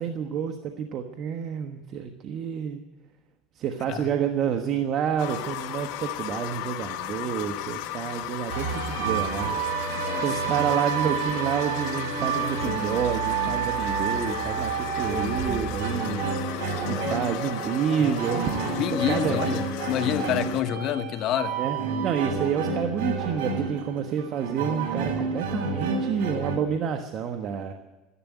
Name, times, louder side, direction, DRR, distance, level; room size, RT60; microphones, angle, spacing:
voice 1, 0.0-2.8 3.6-9.6 10.2-16.2 16.9-19.4 21.6-27.7, right 8 dB, 50° right, 5 dB, 1.2 m, -29 dB
sound 1, 5.2-20.6, left 12 dB, 75° left, 1.5 m, -36 dB
Ashton Manor Stings, 8.5-26.6, right 5 dB, 85° right, 3.4 m, -29 dB
voice 2, 9.9-10.2 10.6-10.7 18.8-21.5, left 10 dB, 55° left, 10 dB, 1.0 m, -28 dB
sound 2, 12.4-13.7 16.0-21.2, left 5 dB, 30° left, 2.4 m, -39 dB
13.5 x 11.0 x 9.2 m, 1.1 s
supercardioid pair, 115°, 0 cm